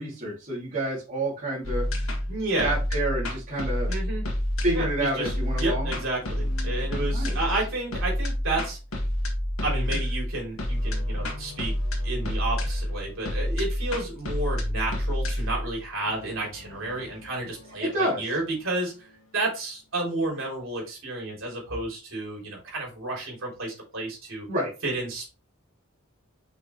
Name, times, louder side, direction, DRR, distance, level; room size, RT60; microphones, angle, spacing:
voice 1, 0.0-1.9 2.6-3.9 4.6-5.9 7.1-7.4 9.9-10.0 17.8-18.2 24.5-24.7, right 1 dB, 40° right, -6 dB, 2.7 m, -28 dB
sound 1, 1.6-18.8, left 1 dB, 75° left, 2.0 m, -29 dB
voice 2, 2.3-2.8 3.9-4.2 4.7-5.3 5.6-8.8 9.6-11.7 12.0-18.9 19.3-24.5 24.8-25.3, right 2 dB, 65° right, -2 dB, 3.6 m, -31 dB
5.9 x 5.8 x 3.1 m, 0.30 s
head